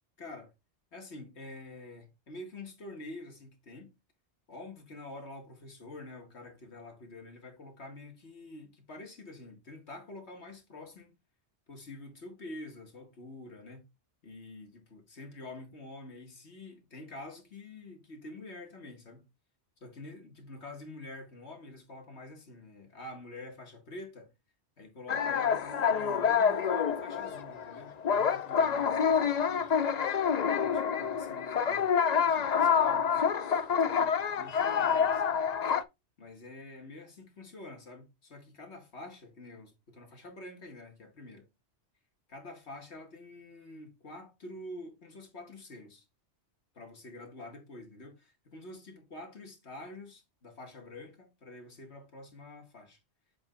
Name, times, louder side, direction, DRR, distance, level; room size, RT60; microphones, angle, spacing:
voice 1, 0.2-0.5 0.9-3.9 4.5-11.1 11.7-13.8 14.2-19.2 19.8-24.3 24.8-29.7 30.3-31.9 32.2-33.3 33.7-35.5 36.2-41.5 42.3-46.0 46.7-53.0, left 2 dB, 65° left, 2.2 m, -47 dB
sound 1, 25.1-35.8, left 7 dB, 50° left, 0.5 m, -27 dB
7.5 x 3.5 x 3.8 m
omnidirectional pair, 1.2 m